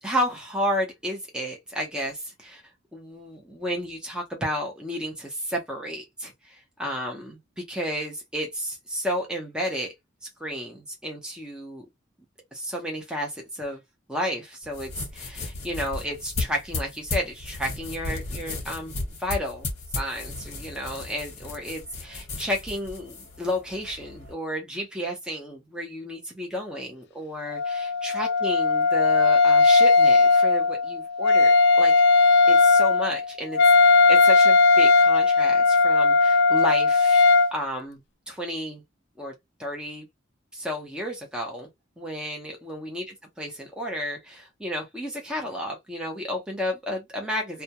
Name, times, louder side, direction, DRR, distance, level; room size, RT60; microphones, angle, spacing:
voice 1, 0.0-2.6 2.9-9.9 10.2-11.9 12.5-13.8 14.1-18.9 19.2-31.9 32.5-37.2 37.5-38.0 38.3-38.8 39.2-39.3 39.6-40.1 40.5-41.7 42.0-43.0 43.4-47.6, equal, 5° right, 0.7 m, -32 dB
sound 1, 14.6-24.3, left 3 dB, 35° left, 1.1 m, -35 dB
Wind instrument woodwind instrument, 27.5-37.5, left 3 dB, 55° left, 0.3 m, -18 dB
2.3 x 2.2 x 2.8 m
head